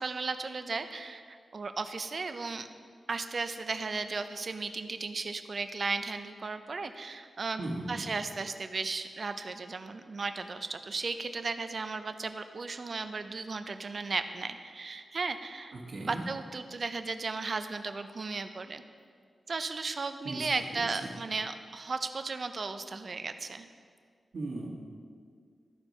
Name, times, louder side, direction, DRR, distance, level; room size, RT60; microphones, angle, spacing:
voice 1, 0.0-2.7 3.1-15.7 16.0-18.8 19.5-23.7, right 4 dB, 45° right, 9 dB, 0.5 m, -35 dB
voice 2, 7.6-8.1 15.7-16.2 20.2-20.5 20.7-21.1 24.3-24.7, right 2 dB, 60° right, -1 dB, 1.6 m, -37 dB
13.5 x 4.5 x 5.3 m, 2.1 s
wide cardioid pair, 125°, 0 cm